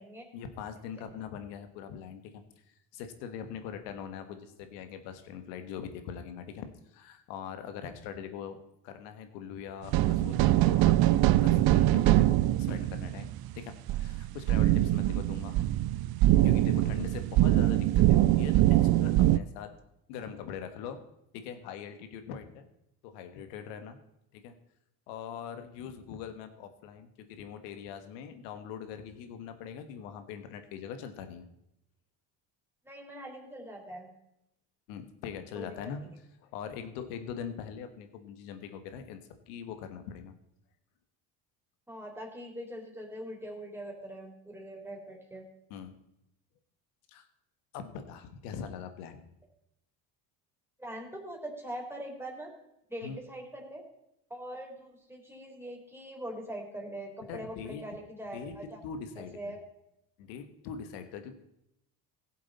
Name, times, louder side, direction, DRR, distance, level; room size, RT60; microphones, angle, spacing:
voice 1, 0.3-2.4 2.9-6.6 6.9-11.1 11.4-15.7 16.4-19.7 20.1-21.0 21.3-22.7 23.0-24.0 24.3-24.5 25.1-31.5 34.9-36.1 36.4-39.2 39.5-40.3 45.7-45.9 47.1-47.3 47.7-49.2 53.0-53.2 57.3-57.8 58.3-58.5 58.8-59.5 60.2-61.3, left 7 dB, 85° left, 8 dB, 1.5 m, -42 dB
sound 1, 9.9-19.4, right 15 dB, 50° right, 0.5 m, -23 dB
voice 2, 32.9-34.1 35.5-36.1 41.9-45.5 50.8-52.5 52.9-53.8 54.3-58.8 59.2-59.6, right 1 dB, 5° right, 0 dB, 3.7 m, -42 dB
16.5 x 7.5 x 4.2 m, 0.82 s
supercardioid pair, 80°, 48 cm